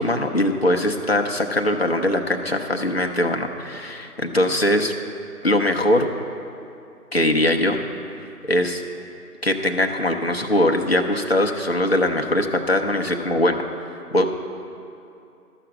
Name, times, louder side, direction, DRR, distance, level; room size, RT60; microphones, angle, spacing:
voice 1, 0.0-4.9 5.4-6.1 7.1-7.8 8.5-8.8 9.4-13.6 14.1-14.3, left 1 dB, 40° left, 3 dB, 0.6 m, -21 dB
12.5 x 5.9 x 7.3 m, 2.7 s
figure-of-eight pair, 170°, 47 cm